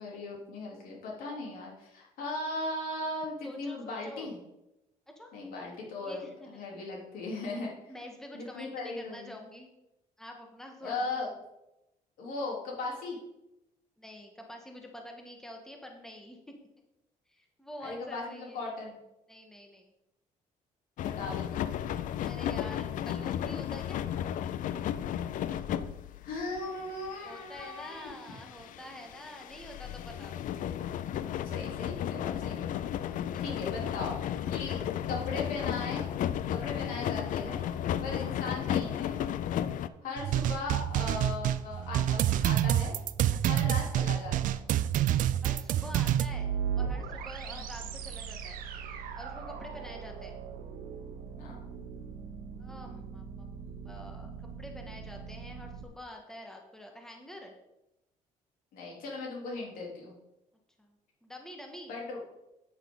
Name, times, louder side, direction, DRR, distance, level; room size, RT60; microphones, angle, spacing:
voice 1, 0.0-4.4 5.3-7.7 8.3-9.3 10.8-11.3 12.2-13.2 17.8-19.0 21.0-21.8 26.2-28.1 31.4-32.8 33.4-34.2 34.5-36.1 36.5-37.6 38.0-39.2 40.0-42.9 43.5-44.7 47.5-47.6 49.7-49.8 51.4-51.6 58.7-60.1 61.9-62.2, left 3 dB, 80° left, -3 dB, 3.7 m, -38 dB
voice 2, 3.4-4.3 5.1-5.3 6.0-6.6 7.9-9.7 10.2-11.2 14.0-16.5 17.3-18.6 19.3-19.9 22.2-24.0 27.2-30.5 33.2-34.0 43.3-43.7 45.4-48.6 49.1-50.4 52.6-54.3 54.6-57.5 60.8-60.9 61.2-62.0, left 1 dB, 5° left, 1 dB, 1.7 m, -47 dB
sound 1, 21.0-39.9, left 10 dB, 65° left, 0.5 m, -34 dB
sound 2, 40.2-46.3, right 11 dB, 65° right, 0.5 m, -27 dB
sound 3, 45.9-55.8, right 7 dB, 85° right, 1.1 m, -39 dB
9.4 x 9.1 x 4.0 m, 0.90 s
cardioid pair, 110°, 14 cm